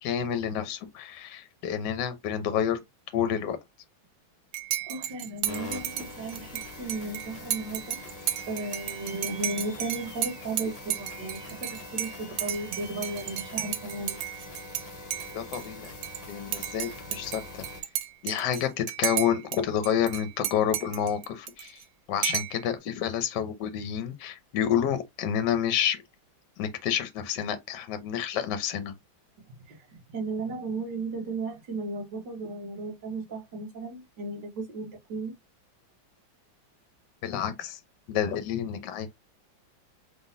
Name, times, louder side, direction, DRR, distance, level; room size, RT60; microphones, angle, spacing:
voice 1, 0.0-2.8 3.1-3.6 15.3-15.9 16.3-17.7 18.2-21.8 22.1-26.0 26.6-28.9 37.2-37.8 38.1-39.1, left 9 dB, 65° left, 1.3 m, -29 dB
Dishes pots and pans / Cutlery silverware / Chink clink, 4.5-14.8 15.1-16.2 16.5-19.6 19.8-21.8 22.2-22.6, right 12 dB, 80° right, 1.3 m, -33 dB
voice 2, 4.9-8.0 8.5-14.2 29.7-35.4, right 2 dB, 65° right, 1.8 m, -35 dB
sound 1, 5.4-17.8, left 2 dB, 25° left, 0.9 m, -43 dB
3.9 x 3.7 x 2.6 m
omnidirectional pair, 2.1 m